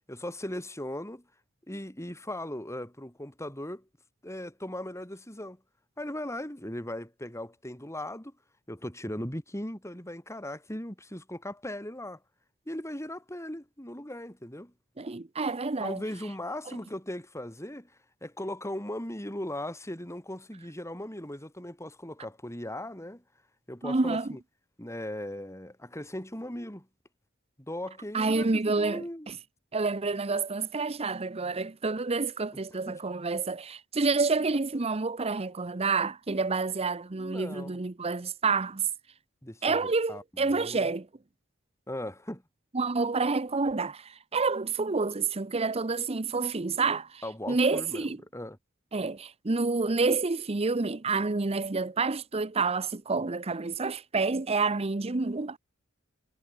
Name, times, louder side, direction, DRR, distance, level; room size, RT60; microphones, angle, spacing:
voice 1, 0.1-1.2 1.7-3.8 4.2-5.6 6.0-8.3 8.7-12.2 12.7-14.7 15.8-17.9 18.2-23.2 23.7-24.4 24.8-26.9 27.6-29.3 32.9-33.0 37.2-37.8 39.4-40.9 41.9-42.4 47.2-48.1 48.3-48.6, left 1 dB, 15° left, 7.0 m, -38 dB
voice 2, 15.0-16.0 23.8-24.4 28.1-29.4 29.7-38.9 39.6-41.1 42.7-47.2 47.5-48.2 48.9-55.6, right 4 dB, 30° right, 0.8 m, -28 dB
head